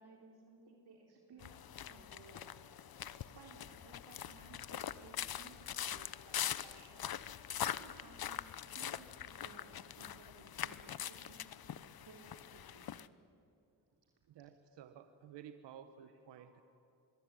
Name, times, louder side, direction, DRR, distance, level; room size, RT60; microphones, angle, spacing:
voice 1, 0.0-2.5 3.0-7.2 7.6-8.5 8.7-11.5 12.0-12.9 16.1-16.6, right 4 dB, 65° right, 0 dB, 3.7 m, -59 dB
sound 1, 1.4-13.1, left 10 dB, 60° left, 1.0 m, -43 dB
voice 2, 14.3-16.6, right 9 dB, 85° right, 10 dB, 1.2 m, -54 dB
25.0 x 22.0 x 9.1 m, 2.6 s
supercardioid pair, 50°, 42 cm